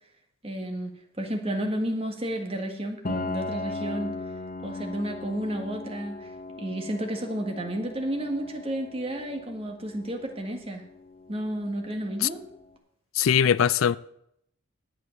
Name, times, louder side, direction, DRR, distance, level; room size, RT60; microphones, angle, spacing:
voice 1, 0.4-0.9 1.2-4.2 4.6-6.3 6.6-10.8 11.3-12.4, right 1 dB, 30° right, 1.6 m, -31 dB
Piano, 3.0-12.6, left 3 dB, 45° left, 1.0 m, -38 dB
voice 2, 13.2-14.0, left 8 dB, 80° left, 0.4 m, -21 dB
10.5 x 8.3 x 6.4 m
head